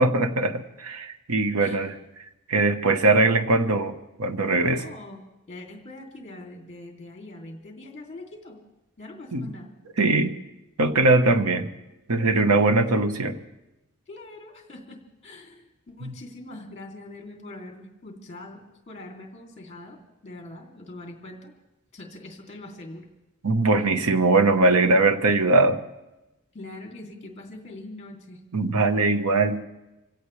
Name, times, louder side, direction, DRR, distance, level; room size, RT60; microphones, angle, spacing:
voice 1, 0.0-1.9 2.5-4.8 9.3-9.5 10.0-10.3 10.8-11.7 12.1-13.4 16.0-16.1 23.4-25.8 28.5-29.6, right 2 dB, 85° right, 9 dB, 1.1 m, -21 dB
voice 2, 4.7-8.6 9.0-9.7 10.0-10.1 12.3-12.4 14.1-20.0 20.2-21.5 21.9-23.1 26.5-28.4, left 2 dB, 30° left, 1 dB, 2.7 m, -43 dB
26.5 x 17.0 x 3.3 m, 0.96 s
head